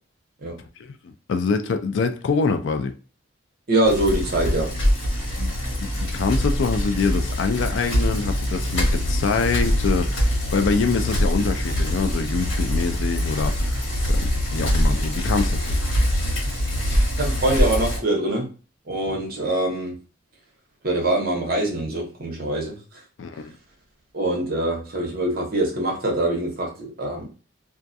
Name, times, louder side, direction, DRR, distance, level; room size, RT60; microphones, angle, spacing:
voice 1, 0.8-2.9 5.4-5.5 5.8-13.8 14.1-14.2 14.5-15.6 23.2-23.5, left 4 dB, 60° left, 0.3 m, -25 dB
voice 2, 3.7-4.7 17.2-18.5 18.9-20.0 20.8-23.0 24.1-27.3, right 1 dB, 45° right, 0.8 m, -24 dB
Bicycle, 3.8-18.0, equal, 85° left, 1.4 m, -23 dB
2.4 x 2.3 x 2.6 m
head